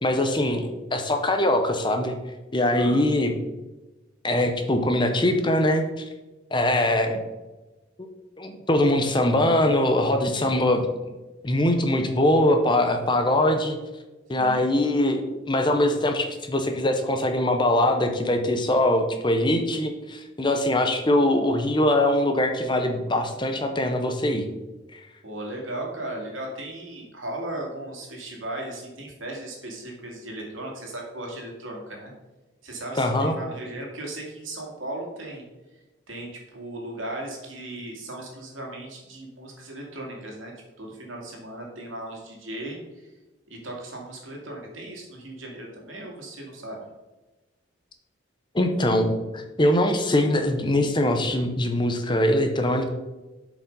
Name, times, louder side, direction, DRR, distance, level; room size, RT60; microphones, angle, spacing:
voice 1, 0.0-2.2 2.5-3.4 4.2-6.1 6.5-7.2 8.0-8.1 8.4-10.9 11.4-13.8 14.3-24.5 24.9-25.0 33.0-33.3 48.5-52.9, left 1 dB, 25° left, 6 dB, 0.7 m, -22 dB
voice 2, 14.3-14.6 25.2-32.1 32.6-35.4 36.1-40.5 40.8-43.1 43.5-46.9, right 1 dB, 80° right, -1 dB, 2.4 m, -37 dB
7.4 x 5.0 x 5.3 m, 1.1 s
head